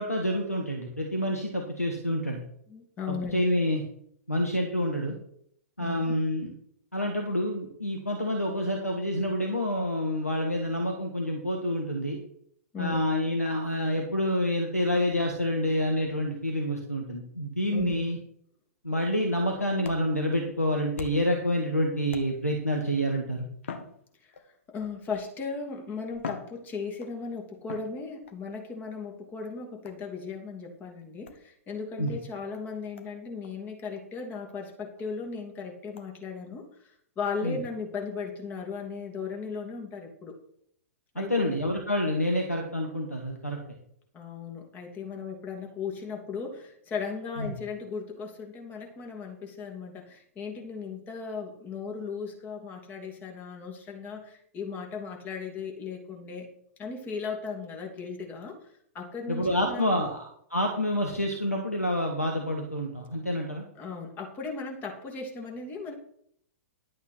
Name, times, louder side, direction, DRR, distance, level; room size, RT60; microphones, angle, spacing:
voice 1, 0.0-2.4 3.1-3.8 4.3-5.2 5.8-6.5 6.9-12.2 12.8-18.2 18.8-23.5 32.0-32.1 37.4-37.6 41.2-43.6 47.4-47.5 59.3-63.7, equal, 90° left, 1 dB, 1.7 m, -28 dB
voice 2, 2.7-3.5 5.8-6.0 12.7-13.0 17.7-18.0 24.2-24.3 24.7-40.4 41.1-41.6 44.1-56.5 56.8-60.0 63.8-65.9, left 5 dB, 20° left, 1 dB, 2.7 m, -37 dB
sound 1, 19.8-21.4 22.1-22.7 23.6-24.7 25.5-25.6 26.1-27.2 27.7-28.4 29.8-30.2 31.3-31.4 32.1-32.2 32.5-32.6 33.0-33.1 33.4-33.5 34.0-34.1 34.5-34.6 35.0-35.1 36.0-36.1, left 6 dB, 60° left, 1.4 m, -43 dB
11.5 x 8.0 x 4.4 m, 0.67 s
figure-of-eight pair, 105°, 8 cm